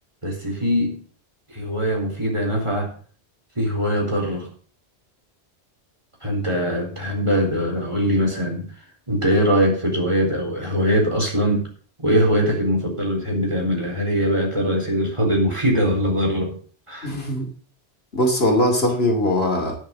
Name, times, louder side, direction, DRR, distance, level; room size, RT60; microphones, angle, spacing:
voice 1, 0.2-1.0 1.5-2.9 3.6-4.5 6.2-8.7 9.1-11.7 12.0-16.6 16.9-17.1, equal, 25° right, -1 dB, 4.1 m, -22 dB
voice 2, 17.0-17.4 18.1-19.8, left 1 dB, 65° left, 2 dB, 2.8 m, -20 dB
10.5 x 6.7 x 7.2 m, 0.44 s
omnidirectional pair, 1.1 m